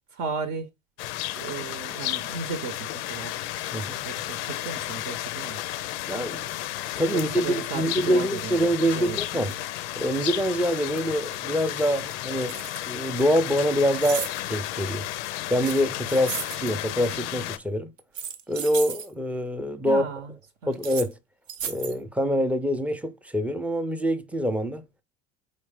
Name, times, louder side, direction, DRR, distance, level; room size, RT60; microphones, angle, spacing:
voice 1, 0.1-0.7 1.4-3.3 4.0-5.6 7.1-8.6 9.0-9.2 19.9-20.4 20.6-20.8, right 6 dB, 55° right, 0.8 m, -34 dB
sound 1, 1.0-17.6, left 14 dB, 70° left, 0.5 m, -33 dB
voice 2, 6.1-6.6 7.0-9.5 10.0-12.6 12.9-15.1 15.5-17.9 18.5-20.0 20.7-21.2 21.7-24.8, equal, 5° right, 0.5 m, -25 dB
sound 2, 11.7-13.3 14.0-14.4 15.6-16.6 18.0-19.1 20.7-21.1 21.5-22.0, right 7 dB, 85° right, 0.7 m, -35 dB
4.2 x 3.2 x 3.3 m
hypercardioid pair, 75°, 37 cm